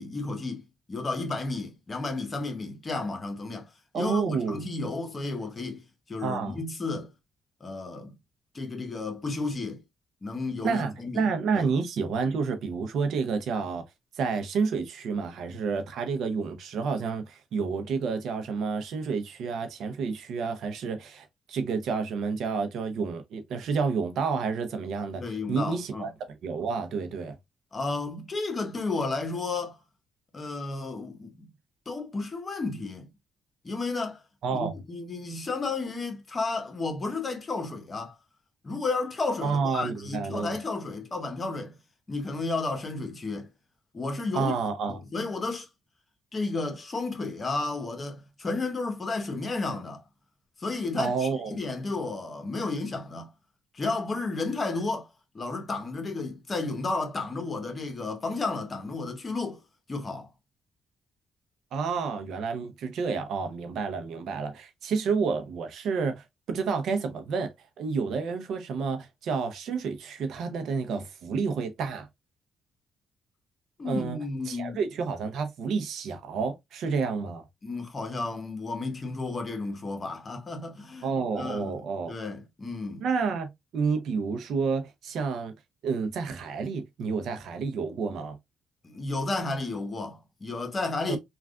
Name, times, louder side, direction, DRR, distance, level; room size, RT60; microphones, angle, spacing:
voice 1, 0.0-5.8 6.1-7.1 7.6-8.2 8.5-9.8 10.2-11.3 11.5-11.7 25.2-26.1 27.7-29.8 30.3-31.5 31.9-33.1 33.6-34.2 34.5-38.2 38.6-41.7 42.1-43.5 43.9-44.5 45.1-45.7 46.3-50.0 50.6-53.3 53.7-55.1 55.3-59.6 59.9-60.3 73.8-74.8 77.6-81.1 81.4-81.8 82.1-83.0 88.8-91.2, left 3 dB, 35° left, 1.0 m, -32 dB
voice 2, 3.9-4.6 6.2-6.7 10.6-13.8 14.1-27.4 34.4-34.7 39.4-40.6 44.3-45.0 51.0-51.6 61.7-67.5 67.8-72.1 73.8-74.2 74.5-77.4 81.0-82.1 83.0-85.5 85.8-88.4 91.1-91.2, right 5 dB, 75° right, 0.6 m, -30 dB
3.4 x 2.4 x 2.4 m
cardioid pair, 90°, 0 cm